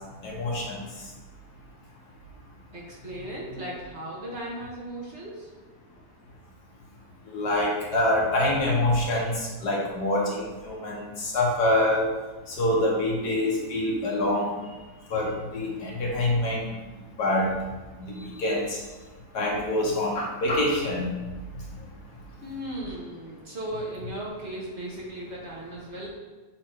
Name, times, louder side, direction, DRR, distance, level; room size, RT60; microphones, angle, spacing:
voice 1, 0.2-0.8 7.3-12.1 12.5-14.6 15.1-16.7 17.2-17.5 18.0-18.8 19.3-21.2 21.7-21.8, left 1 dB, 70° left, -2 dB, 1.9 m, -25 dB
voice 2, 2.7-5.5 22.4-26.1, right 1 dB, 40° right, -5 dB, 1.7 m, -36 dB
7.3 x 3.8 x 4.5 m, 1.2 s
omnidirectional pair, 1.8 m